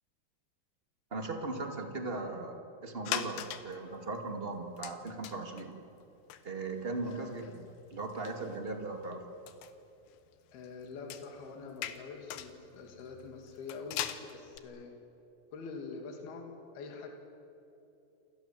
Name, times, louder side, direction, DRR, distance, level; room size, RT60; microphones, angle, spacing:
voice 1, 1.1-5.7 6.4-7.6 7.9-9.2, right 3 dB, 20° right, 4 dB, 1.6 m, -38 dB
sound 1, 3.1-3.8 4.2-4.3 4.8-5.7 6.0-6.1 6.3-9.1 9.5-14.6, left 12 dB, 85° left, 3.3 m, -41 dB
voice 2, 7.0-7.5 10.5-14.9 15.5-17.1, left 4 dB, 70° left, 3 dB, 4.4 m, -45 dB
28.5 x 25.0 x 7.6 m, 2.9 s
omnidirectional pair, 4.6 m